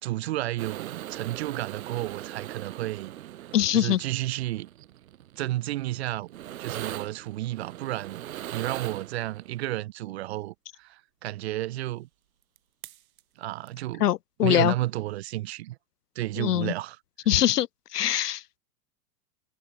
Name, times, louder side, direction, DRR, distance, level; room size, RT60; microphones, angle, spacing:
voice 1, 0.0-3.2 3.7-4.7 5.4-6.3 6.6-12.1 13.4-14.1 14.4-15.8 16.2-17.0, right 16 dB, 40° right, 1.8 m, -32 dB
sound 1, 0.6-9.6 12.6-12.7 12.8-13.2 13.7-13.8, right 13 dB, 60° right, 4.4 m, -41 dB
voice 2, 3.5-4.0 14.0-14.7 16.4-16.7 17.3-17.7 17.9-18.6, left 12 dB, 80° left, 2.5 m, -23 dB
supercardioid pair, 180°, 47 cm